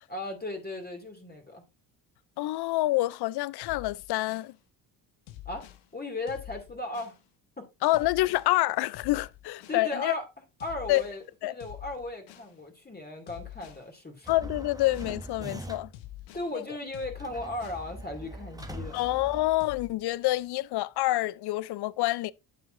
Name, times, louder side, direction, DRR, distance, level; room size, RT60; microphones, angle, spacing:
voice 1, 0.1-1.6 5.4-5.7 5.9-7.2 7.6-7.7 9.7-10.2 10.6-14.3 16.3-19.1, left 2 dB, 20° left, 2.6 m, -36 dB
voice 2, 2.4-4.5 7.8-10.1 10.9-11.0 11.4-11.5 14.3-15.9 16.5-16.6 18.9-22.3, left 17 dB, 50° left, 0.6 m, -27 dB
sound 1, 3.6-4.5 5.3-5.8 6.3-7.2 7.9-8.5 8.9-9.8 10.6-11.2 11.6-12.5 13.3-13.8 14.3-15.2 15.9-16.5 16.9-17.9 18.6-19.2 19.6-19.9, left 14 dB, 75° left, 1.2 m, -46 dB
sound 2, 14.2-16.1 17.2-20.0, right 1 dB, 5° right, 1.2 m, -42 dB
9.5 x 7.0 x 2.6 m
supercardioid pair, 65°, 49 cm